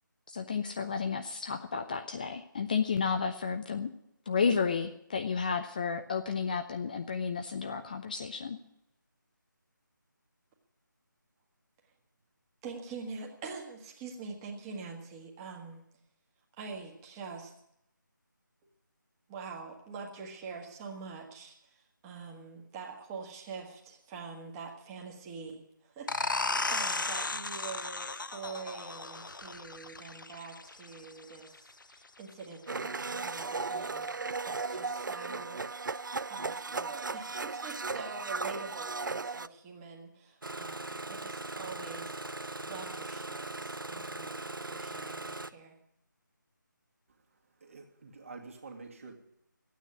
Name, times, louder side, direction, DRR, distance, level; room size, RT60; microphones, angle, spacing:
voice 1, 0.3-3.9 4.3-8.6, left 5 dB, 25° left, 7 dB, 0.5 m, -32 dB
voice 2, 12.6-15.8 16.6-17.5 19.3-34.2 34.4-42.3 42.6-45.7, right 4 dB, 15° right, 0 dB, 1.6 m, -45 dB
sound 1, 26.1-31.5, left 3 dB, 75° left, 0.7 m, -35 dB
Domestic sounds home sounds, 32.7-39.5, right 4 dB, 70° right, 0.5 m, -36 dB
Engine starting, 40.4-45.5, right 2 dB, 90° right, 0.8 m, -40 dB
voice 3, 47.3-49.1, right 4 dB, 40° right, 3 dB, 2.2 m, -48 dB
13.5 x 9.3 x 9.8 m, 0.79 s
figure-of-eight pair, 160°, 11 cm